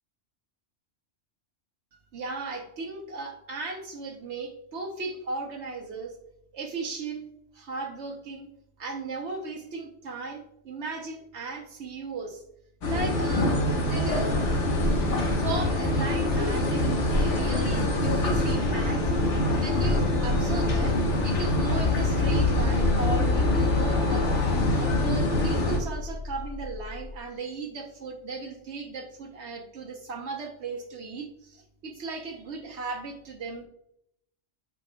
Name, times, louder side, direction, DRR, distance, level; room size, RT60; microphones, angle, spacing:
voice 1, 1.9-6.1 6.5-7.3 7.5-8.5 8.8-12.4 12.8-14.3 15.4-19.0 19.5-21.0 21.2-24.3 24.8-33.7, right 3 dB, 75° right, 2 dB, 1.1 m, -36 dB
sound 1, 12.8-25.8, left 2 dB, 85° left, 1.4 m, -24 dB
sound 2, 19.7-27.2, left 3 dB, 65° left, 0.3 m, -36 dB
8.3 x 5.3 x 2.2 m, 0.76 s
omnidirectional pair, 1.2 m